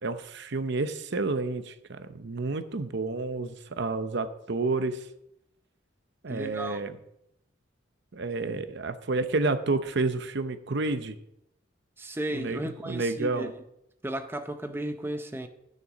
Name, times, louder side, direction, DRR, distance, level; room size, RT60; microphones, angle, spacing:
voice 1, 0.0-5.0 6.2-7.0 8.1-11.2 12.3-13.5, right 3 dB, 60° right, 0.8 m, -30 dB
voice 2, 6.3-6.8 12.0-13.5 14.0-15.5, right 1 dB, 10° right, 0.6 m, -34 dB
12.5 x 6.7 x 6.2 m
head